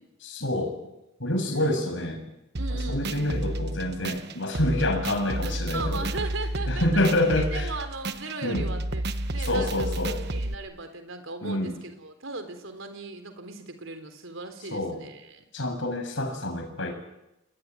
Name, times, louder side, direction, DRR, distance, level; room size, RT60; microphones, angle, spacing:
voice 1, 0.2-0.8 1.2-2.2 2.7-6.1 6.7-7.7 8.4-8.7 9.4-10.2 11.4-11.8 14.7-15.0 15.5-16.9, left 1 dB, 60° left, 5 dB, 7.2 m, -27 dB
voice 2, 1.4-1.8 2.6-3.3 5.4-7.0 7.4-15.4, right 3 dB, 65° right, 8 dB, 3.8 m, -38 dB
sound 1, 2.6-10.5, right 1 dB, 50° right, 1.3 m, -31 dB
28.5 x 21.5 x 9.7 m, 0.89 s
head